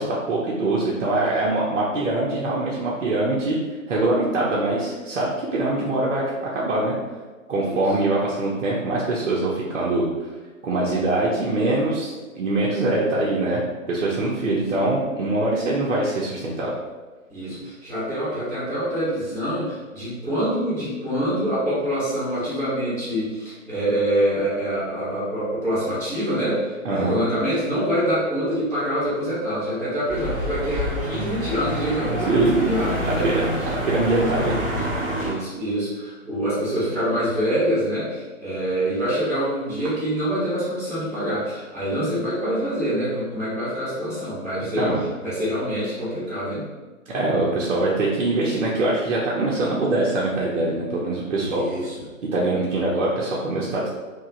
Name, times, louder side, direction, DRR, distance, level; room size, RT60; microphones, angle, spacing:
voice 1, 0.0-3.6 3.9-6.2 6.5-6.9 7.5-10.0 10.6-13.6 13.9-16.7 26.8-27.1 32.3-32.7 33.0-33.5 33.9-34.6 42.0-42.1 44.8-45.0 47.1-51.6 52.3-53.9, right 2 dB, 60° right, -5 dB, 0.6 m, -23 dB
voice 2, 17.3-33.3 35.1-46.6 51.3-52.0, equal, ahead, -23 dB, 0.4 m, -25 dB
sound 1, 30.1-35.3, equal, 15° right, 0.8 m, -27 dB
2.9 x 2.2 x 2.5 m, 1.3 s
figure-of-eight pair, 120°, 41 cm